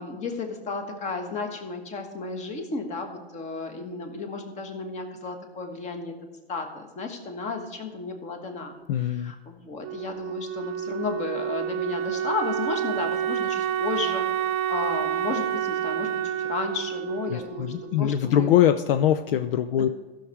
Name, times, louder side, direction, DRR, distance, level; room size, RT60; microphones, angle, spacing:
voice 1, 0.0-6.1 6.5-18.5 19.8-19.9, left 4 dB, 20° left, 5 dB, 1.4 m, -33 dB
voice 2, 8.9-9.3 17.3-19.9, left 10 dB, 60° left, 9 dB, 0.6 m, -22 dB
Wind instrument woodwind instrument, 9.8-18.5, right 9 dB, 35° right, 0.8 m, -29 dB
14.5 x 6.5 x 4.6 m, 1.2 s
hypercardioid pair, 145°, 32 cm